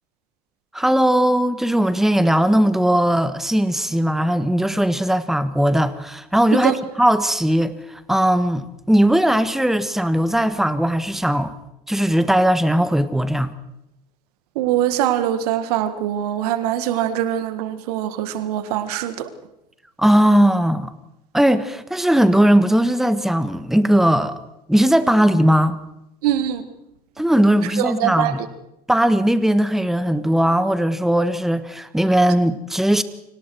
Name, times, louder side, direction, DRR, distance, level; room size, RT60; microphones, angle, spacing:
voice 1, 0.7-11.5 11.9-13.5 20.0-20.9 21.3-24.4 24.7-25.8 27.2-28.4 28.9-33.0, right 1 dB, ahead, 1.5 m, -18 dB
voice 2, 14.6-19.3 26.2-26.6 27.8-28.3, right 11 dB, 65° right, 1.8 m, -22 dB
30.0 x 25.0 x 4.7 m
figure-of-eight pair, 70°, 21 cm